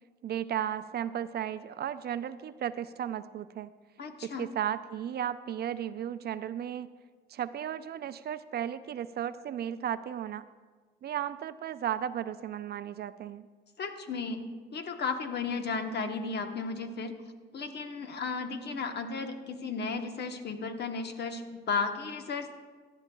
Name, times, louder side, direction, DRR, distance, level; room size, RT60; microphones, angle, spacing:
voice 1, 0.2-3.7 4.2-6.9 7.3-10.4 11.0-13.5, right 10 dB, 55° right, 13 dB, 0.4 m, -35 dB
voice 2, 4.0-4.5 13.8-17.2 17.5-22.5, left 4 dB, 60° left, 6 dB, 1.1 m, -34 dB
16.5 x 11.5 x 2.3 m, 1.4 s
cardioid pair, 90°, 20 cm